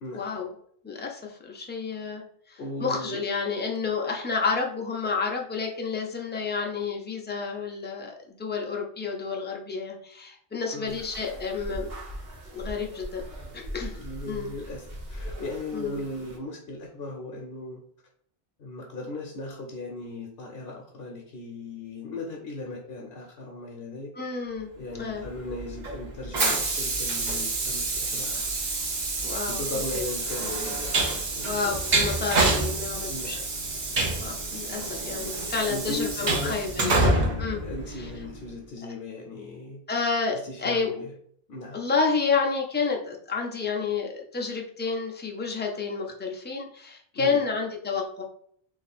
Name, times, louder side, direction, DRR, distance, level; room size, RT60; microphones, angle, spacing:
voice 1, 0.1-0.5 0.8-2.2 2.5-12.0 12.5-13.2 13.5-14.0 14.3-14.5 15.7-16.0 24.1-24.7 25.0-25.3 28.2-28.5 29.2-29.6 29.9-30.0 31.4-33.4 34.2-37.6 38.0-38.1 39.9-40.9 41.7-48.2, left 5 dB, 15° left, 0 dB, 0.3 m, -30 dB
voice 2, 2.6-3.3 10.7-11.1 13.9-17.8 18.6-24.1 24.8-28.3 29.5-31.5 33.1-33.5 35.3-39.8 40.3-41.1 41.5-41.8 47.1-47.4, left 2 dB, 70° left, 0 dB, 0.9 m, -37 dB
sound 1, 10.9-16.4, equal, 70° right, 1.0 m, -40 dB
Train, 25.2-38.4, right 2 dB, 50° right, 0.8 m, -28 dB
2.9 x 2.4 x 4.1 m, 0.63 s
omnidirectional pair, 1.1 m